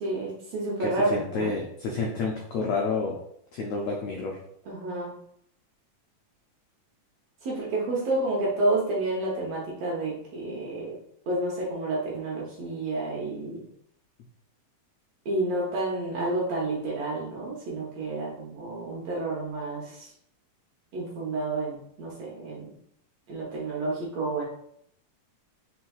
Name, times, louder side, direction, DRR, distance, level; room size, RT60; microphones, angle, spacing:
voice 1, 0.0-1.5 4.7-5.1 7.4-10.9 11.3-13.6 15.3-20.1 20.9-22.7 23.3-24.4, right 2 dB, 65° right, -4 dB, 1.8 m, -30 dB
voice 2, 1.1-3.2 3.5-4.4, left 4 dB, 85° left, -1 dB, 1.5 m, -29 dB
4.7 x 4.4 x 2.3 m, 0.70 s
omnidirectional pair, 3.7 m